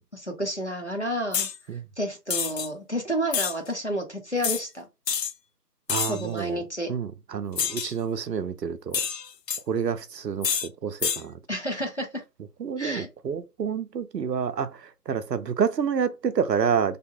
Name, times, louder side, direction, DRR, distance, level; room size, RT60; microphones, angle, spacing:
voice 1, 0.1-1.5 2.0-4.9 6.1-6.9 11.5-12.1 12.8-13.1, equal, 45° left, 0.6 m, -30 dB
sound 1, 1.3-1.6 2.3-2.7 3.3-3.5 4.4-4.6 5.1-5.3 5.9-6.3 7.6-7.9 8.9-9.6 10.4-10.7 11.0-11.2, left 7 dB, 85° left, 0.6 m, -27 dB
voice 2, 5.9-6.6 6.9-9.0 9.7-11.4 12.6-14.7 15.1-17.0, right 7 dB, 90° right, 0.6 m, -28 dB
2.8 x 2.1 x 2.6 m
figure-of-eight pair, 180°, 48 cm